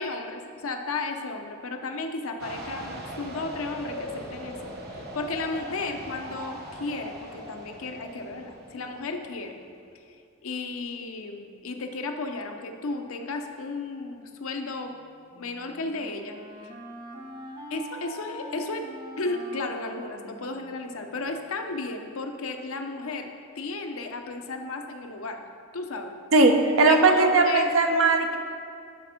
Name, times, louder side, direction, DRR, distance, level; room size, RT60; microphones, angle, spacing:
voice 1, 0.0-4.6 4.9-9.5 10.4-14.9 15.3-16.4 16.6-16.7 17.7-18.9 19.2-25.4 25.7-26.1 26.9-27.7, left 3 dB, 80° left, 4 dB, 0.7 m, -34 dB
sound 1, 2.4-9.8, equal, 45° right, 1.0 m, -40 dB
Wind instrument woodwind instrument, 15.3-21.1, right 1 dB, 20° right, 0.8 m, -43 dB
voice 2, 26.3-28.4, right 3 dB, 75° right, 4 dB, 0.8 m, -19 dB
11.0 x 4.4 x 5.1 m, 2.5 s
head